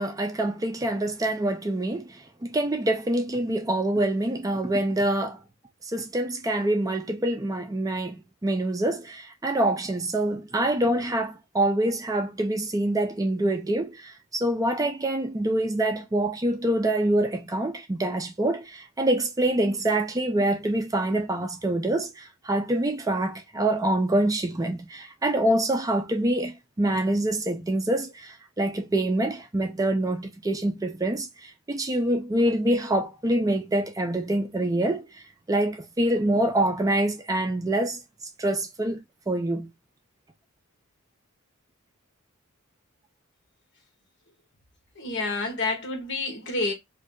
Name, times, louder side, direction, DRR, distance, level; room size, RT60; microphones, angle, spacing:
voice 1, 0.0-5.4 5.8-38.0 38.4-39.0 39.3-39.7, right 1 dB, 15° right, 0.4 m, -26 dB
voice 2, 45.0-46.7, left 3 dB, 60° left, 1.0 m, -28 dB
2.6 x 2.4 x 3.6 m
head